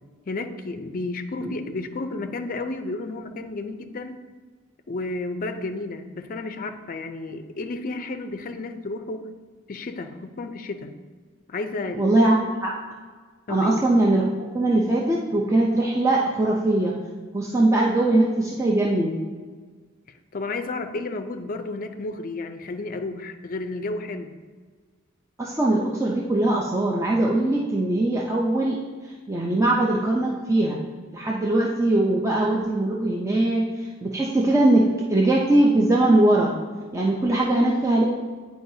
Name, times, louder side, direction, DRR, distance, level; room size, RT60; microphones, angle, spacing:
voice 1, 0.3-4.2 4.9-9.2 9.7-10.9 11.5-12.1 13.5-13.9 20.1-24.3, left 2 dB, 45° left, 7 dB, 0.4 m, -32 dB
voice 2, 12.0-12.7 13.5-14.2 14.5-16.9 17.3-19.2 25.4-28.8 29.0-30.8 31.1-36.5 36.9-38.1, right 2 dB, 15° right, -3 dB, 0.5 m, -21 dB
9.3 x 4.6 x 2.7 m, 1.5 s
head